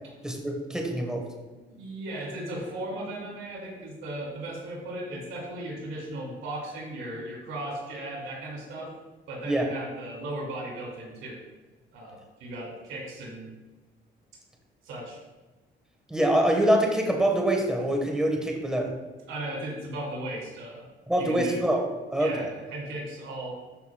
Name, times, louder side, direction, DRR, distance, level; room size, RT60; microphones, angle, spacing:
voice 1, 0.2-1.2 9.4-9.6 16.1-18.9 21.1-21.8 22.1-22.5, right 1 dB, 5° right, 1 dB, 1.4 m, -25 dB
voice 2, 1.7-8.9 9.3-11.4 11.9-13.5 14.8-15.2 19.3-20.8 21.2-21.6 22.2-23.6, right 1 dB, 90° right, -2 dB, 2.5 m, -36 dB
13.0 x 5.4 x 2.4 m, 1.2 s
cardioid pair, 90°, 20 cm